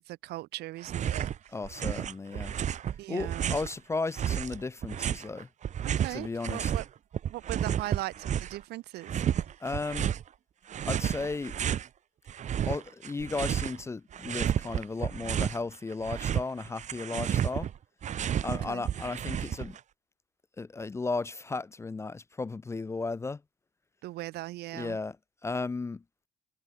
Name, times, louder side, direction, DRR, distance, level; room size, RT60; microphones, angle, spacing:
voice 1, 0.0-1.3 3.0-3.6 5.8-6.9 7.3-9.1 18.5-18.8 24.0-25.0, right 17 dB, 75° right, 0.7 m, -39 dB
sound 1, 0.8-1.4 1.6-3.7 4.2-6.9 7.1-8.6 9.0-10.2 10.7-11.9 12.3-13.8 14.1-15.6 15.9-19.8, right 9 dB, 45° right, 0.9 m, -31 dB
voice 2, 1.5-2.6 3.1-5.5 6.1-6.7 9.6-10.1 10.8-11.6 12.6-17.7 18.4-19.8 20.6-23.4 24.7-25.2 25.4-26.0, left 3 dB, 15° left, 0.4 m, -35 dB
cardioid pair, 110°, 17 cm